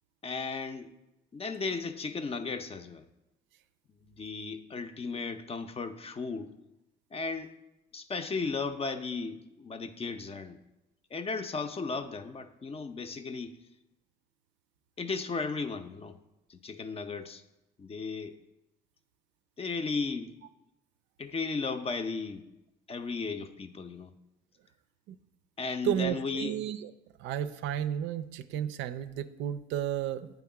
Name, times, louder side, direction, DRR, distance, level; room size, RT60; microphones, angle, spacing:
voice 1, 0.2-0.9 1.3-3.0 4.0-6.5 7.1-7.5 7.9-10.6 11.1-13.6 15.0-16.2 16.5-17.4 17.8-18.4 19.6-20.3 21.2-22.4 22.9-24.1 25.6-26.6, left 4 dB, 30° left, 9 dB, 0.6 m, -35 dB
voice 2, 25.8-26.8 27.2-30.3, right 10 dB, 65° right, 12 dB, 0.4 m, -32 dB
8.1 x 3.5 x 4.7 m, 0.92 s
hypercardioid pair, 60°, 21 cm